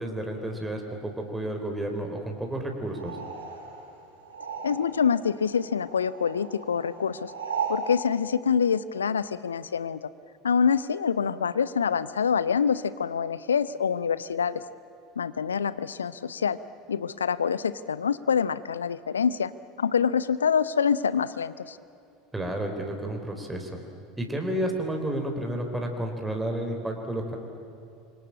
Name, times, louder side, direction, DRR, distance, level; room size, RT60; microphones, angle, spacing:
voice 1, 0.0-3.2 22.3-23.7 24.2-27.4, right 1 dB, 10° right, 2 dB, 4.0 m, -31 dB
sound 1, 2.9-5.2 5.4-7.9, right 6 dB, 75° right, 6.4 m, -36 dB
voice 2, 4.6-7.3 7.7-10.1 10.4-14.6 15.2-16.6 16.9-19.5 19.8-21.8, left 6 dB, 75° left, 16 dB, 0.7 m, -26 dB
27.0 x 25.0 x 8.7 m, 2.7 s
figure-of-eight pair, 70°, 0 cm